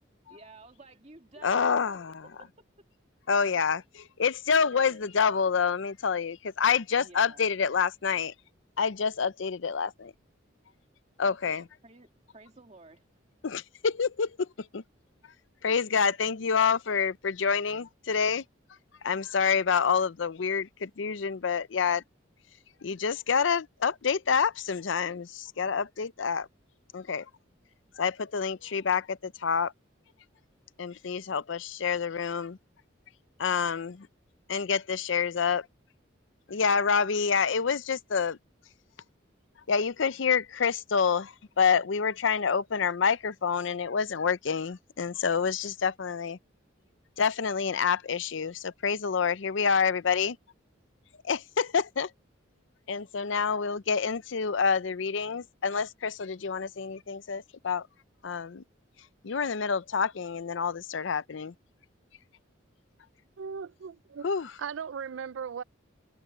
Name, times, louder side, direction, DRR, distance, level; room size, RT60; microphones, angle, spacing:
voice 1, 0.3-2.7 4.5-5.1 6.9-7.5 11.2-13.1, right 2 dB, 35° right, 2.2 m, -53 dB
voice 2, 1.4-2.1 3.3-8.3 8.8-10.1 11.2-11.6 13.4-14.3 14.7-14.8 15.6-18.4 19.0-22.0 22.8-26.5 26.9-27.3 28.0-29.7 30.8-32.6 33.4-34.1 34.5-35.7 36.5-38.4 39.7-46.4 47.2-50.4 51.2-52.1 52.9-57.9 58.2-58.6 59.2-61.5 64.2-64.5, left 6 dB, 70° left, 0.6 m, -27 dB
voice 3, 63.4-64.3 64.6-65.6, right 6 dB, 75° right, 0.4 m, -37 dB
head